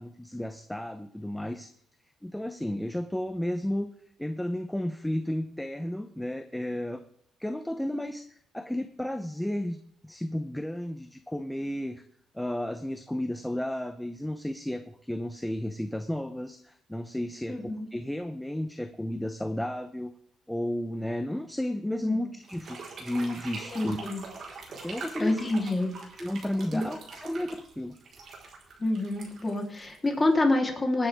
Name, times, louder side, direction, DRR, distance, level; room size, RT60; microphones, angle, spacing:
voice 1, 0.0-1.7 2.2-3.9 4.2-7.0 7.4-8.2 8.5-9.8 10.0-12.0 12.3-17.6 17.9-20.1 20.5-24.0 24.8-25.4 26.2-27.9, left 1 dB, 5° left, 8 dB, 0.8 m, -33 dB
voice 2, 17.5-17.9 22.1-22.3 23.7-24.2 25.2-26.0 26.7-26.9 28.8-31.1, left 2 dB, 20° left, 1 dB, 3.4 m, -27 dB
sound 1, 22.4-30.4, right 4 dB, 60° right, 4.3 m, -43 dB
20.0 x 9.9 x 3.6 m, 0.65 s
cardioid pair, 90°, 0 cm